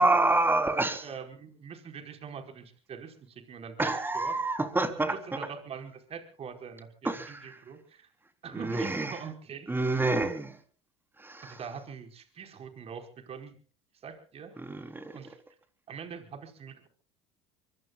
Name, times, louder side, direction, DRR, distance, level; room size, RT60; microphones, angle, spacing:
voice 1, 0.0-1.1 3.8-5.1 7.0-7.6 8.5-9.2 9.7-10.5 11.2-11.6 14.6-15.2, right 2 dB, 15° right, 7 dB, 3.8 m, -27 dB
voice 2, 0.7-4.4 4.8-8.1 8.4-10.2 11.4-13.6 13.9-15.4 15.9-16.9, right 6 dB, 45° right, 5 dB, 4.9 m, -44 dB
24.5 x 24.0 x 2.4 m, 0.41 s
hypercardioid pair, 75°, 15 cm